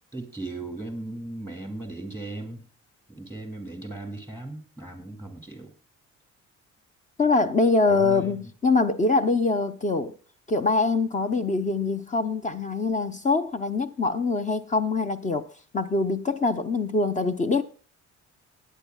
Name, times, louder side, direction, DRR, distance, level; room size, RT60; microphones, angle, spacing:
voice 1, 0.1-2.6 3.1-5.7 7.9-8.5, right 2 dB, 10° left, 2.2 m, -37 dB
voice 2, 7.2-10.1 10.5-15.5 15.7-17.6, left 3 dB, 25° left, 0.6 m, -24 dB
17.0 x 9.1 x 2.3 m
cardioid pair, 125°, 29 cm